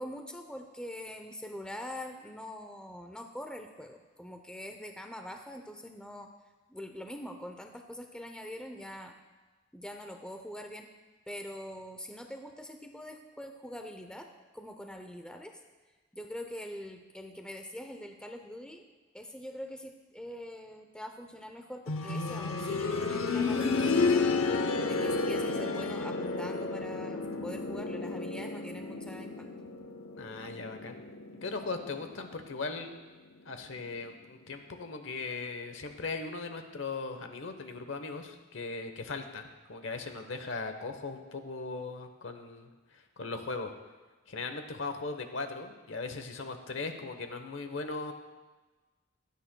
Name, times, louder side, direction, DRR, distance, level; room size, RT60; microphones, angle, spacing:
voice 1, 0.0-6.3 6.7-9.1 9.7-10.9 11.3-14.3 14.5-15.6 16.1-18.9 19.1-24.3 24.9-29.5, equal, 5° left, 4 dB, 0.6 m, -43 dB
sound 1, 21.9-32.6 32.9-33.0 33.9-34.0, left 3 dB, 90° left, 0.7 m, -32 dB
voice 2, 30.1-31.0 31.4-32.9 33.4-43.7 44.3-48.1, left 3 dB, 65° left, 7 dB, 1.0 m, -38 dB
16.0 x 11.5 x 2.2 m, 1.2 s
head